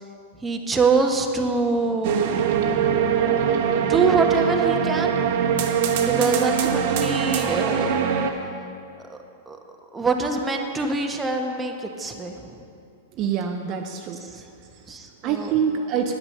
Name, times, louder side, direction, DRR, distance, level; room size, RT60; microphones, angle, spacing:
voice 1, 0.4-2.3 3.8-5.2 6.0-8.0 9.1-9.2 9.5-9.6 9.9-12.6 14.3-14.4 14.9-15.6, right 4 dB, 15° right, 3 dB, 1.1 m, -24 dB
sound 1, 2.0-8.3, right 7 dB, 60° right, 1.1 m, -22 dB
voice 2, 13.1-14.2 14.7-14.9 15.2-16.1, right 7 dB, 40° right, 3 dB, 0.7 m, -26 dB
10.0 x 8.8 x 6.6 m, 2.4 s
hypercardioid pair, 120°, 0 cm